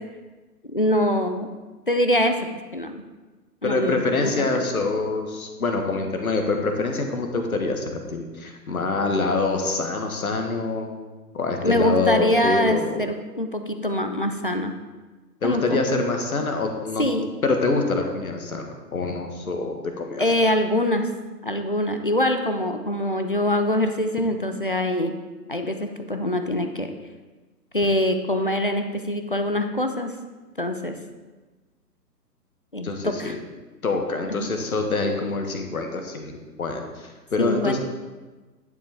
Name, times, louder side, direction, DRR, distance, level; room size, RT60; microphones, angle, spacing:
voice 1, 0.7-1.5 1.9-3.0 3.6-4.6 11.6-14.7 15.4-15.8 17.0-17.3 20.2-21.1 21.4-25.1 25.5-26.9 27.7-30.1 30.6-31.0 32.7-33.4 34.4-34.5 37.4-37.8, left 1 dB, 35° left, 7 dB, 0.4 m, -24 dB
voice 2, 3.6-10.9 11.3-13.0 15.4-17.0 17.4-20.2 32.8-33.4 33.8-37.8, left 3 dB, 55° left, 4 dB, 1.5 m, -25 dB
11.0 x 7.3 x 3.5 m, 1.3 s
figure-of-eight pair, 135°, 50 cm